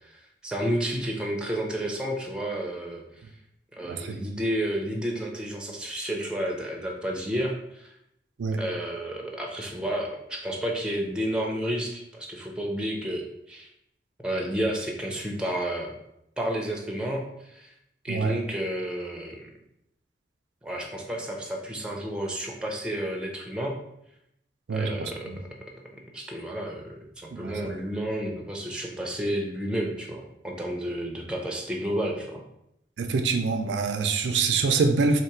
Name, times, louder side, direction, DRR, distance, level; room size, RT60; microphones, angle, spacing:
voice 1, 0.0-3.3 3.7-7.9 8.6-13.7 14.2-15.9 16.4-17.7 18.0-19.5 20.6-23.8 24.7-25.2 26.1-32.4, right 1 dB, 5° right, 0 dB, 0.5 m, -31 dB
voice 2, 3.9-4.3 8.4-8.6 18.1-18.4 24.7-25.4 27.3-27.7 33.0-35.2, right 4 dB, 80° right, 6 dB, 0.4 m, -25 dB
3.1 x 2.8 x 4.5 m, 0.81 s
head